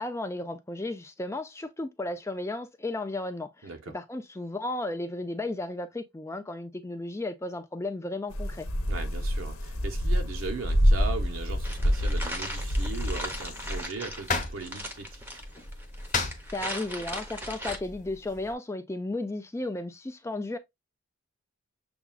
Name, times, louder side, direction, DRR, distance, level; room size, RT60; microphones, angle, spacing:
voice 1, 0.0-8.7 16.5-20.6, left 2 dB, 15° left, 0.3 m, -34 dB
voice 2, 3.6-3.9 8.9-15.4, right 4 dB, 65° right, 0.7 m, -38 dB
sound 1, 8.3-13.8, equal, 85° left, 0.9 m, -27 dB
sound 2, 11.6-17.8, equal, 10° right, 0.7 m, -39 dB
sound 3, 13.2-18.5, left 4 dB, 35° left, 0.9 m, -37 dB
6.9 x 2.3 x 2.3 m
head